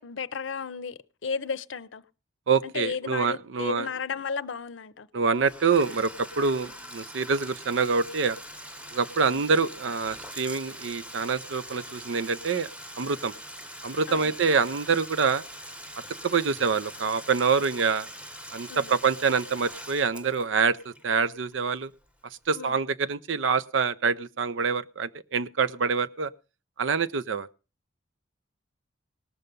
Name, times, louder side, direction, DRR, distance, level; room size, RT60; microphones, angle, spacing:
voice 1, 0.0-2.0 2.6-5.1 9.3-9.4 14.1-14.4 18.7-19.0 22.5-22.8, left 5 dB, 80° left, 0.6 m, -34 dB
voice 2, 2.5-3.9 5.1-8.4 8.9-12.7 13.0-13.3 13.8-15.4 16.2-18.1 18.5-21.9 22.5-26.3 26.8-27.5, right 5 dB, 85° right, 0.6 m, -26 dB
Bathtub (filling or washing), 5.3-22.1, equal, 5° right, 0.9 m, -43 dB
18.5 x 6.8 x 5.2 m
head